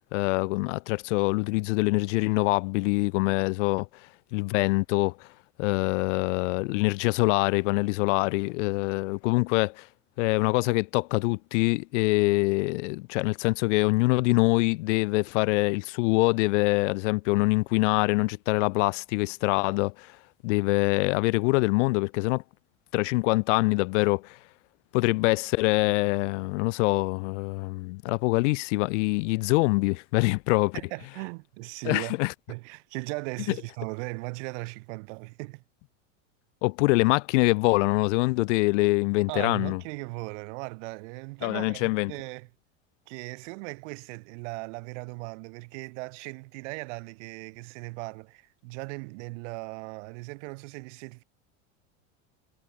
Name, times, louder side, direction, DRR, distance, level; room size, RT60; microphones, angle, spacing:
voice 1, 0.1-3.9 4.3-5.3 5.6-9.9 10.2-20.2 20.4-22.4 22.9-24.4 24.9-30.8 31.8-32.3 36.6-39.8 41.4-42.1, left 25 dB, 70° left, 0.8 m, -24 dB
voice 2, 30.7-32.2 32.5-35.6 39.3-42.5 43.1-51.2, right 28 dB, 70° right, 2.8 m, -38 dB
supercardioid pair, 105°, 37 cm